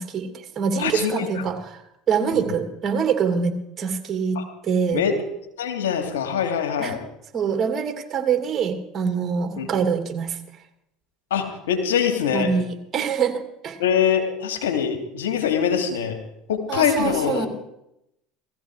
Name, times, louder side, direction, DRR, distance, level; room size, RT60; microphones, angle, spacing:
voice 1, 0.0-1.8 2.1-3.5 3.8-4.4 4.6-5.0 6.8-7.0 7.3-10.4 12.3-13.8 16.7-17.5, right 6 dB, 35° right, 5 dB, 2.9 m, -24 dB
voice 2, 0.8-1.4 2.3-2.5 4.3-4.4 4.9-5.2 5.6-7.0 9.6-9.7 11.3-12.5 13.8-16.2 16.5-17.5, left 8 dB, 85° left, 4 dB, 2.8 m, -23 dB
17.5 x 15.0 x 4.9 m, 0.82 s
hypercardioid pair, 80°, 0 cm